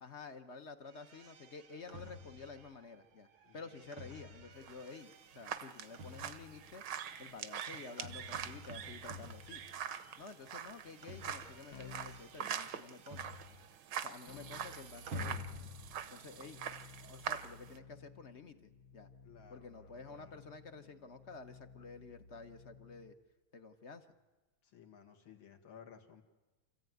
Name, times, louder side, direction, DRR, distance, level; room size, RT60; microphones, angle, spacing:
voice 1, 0.0-3.3 3.5-6.8 7.2-9.6 10.2-13.4 14.0-15.4 16.1-16.6 17.1-19.1 19.5-23.1 23.5-24.1, left 4 dB, 45° left, 8 dB, 1.0 m, -51 dB
sound 1, 0.9-10.2 10.4-13.9 14.1-16.0, left 1 dB, 80° right, 2.3 m, -51 dB
sound 2, 4.6-17.8, right 8 dB, 65° right, 1.4 m, -44 dB
Keyboard (musical), 11.7-12.3 14.3-23.2, left 5 dB, 60° left, 1.5 m, -56 dB
voice 2, 16.3-16.7 19.2-20.5 24.6-26.2, left 7 dB, 75° left, 4 dB, 2.6 m, -58 dB
28.5 x 14.5 x 9.3 m, 1.2 s
omnidirectional pair, 2.2 m